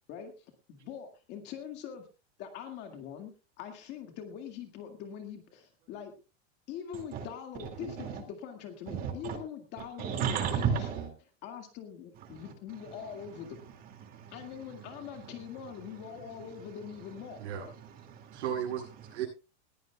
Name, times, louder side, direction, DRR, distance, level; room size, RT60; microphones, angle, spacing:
voice 1, 0.1-2.1 2.4-3.3 3.6-6.1 6.7-10.7 11.4-13.6 14.3-17.4, left 8 dB, 30° left, 5 dB, 2.1 m, -43 dB
voice 2, 7.6-8.2 8.9-9.4 10.0-11.1 12.3-12.9 13.6-15.3 17.6-18.4, right 7 dB, 25° right, 6 dB, 2.3 m, -35 dB
voice 3, 18.3-19.2, right 9 dB, 85° right, -3 dB, 7.9 m, -35 dB
20.0 x 16.0 x 2.3 m, 0.31 s
supercardioid pair, 180°, 34 cm